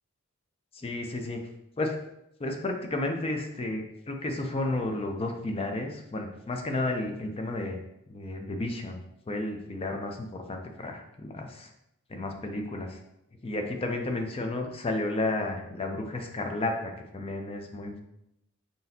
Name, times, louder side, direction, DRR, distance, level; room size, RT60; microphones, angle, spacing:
voice 1, 0.7-1.4 1.8-2.0 2.4-7.8 8.1-9.0 9.3-11.7 12.1-13.0 13.4-18.0, left 2 dB, 25° left, 4 dB, 0.5 m, -32 dB
4.0 x 3.9 x 2.8 m, 0.80 s
head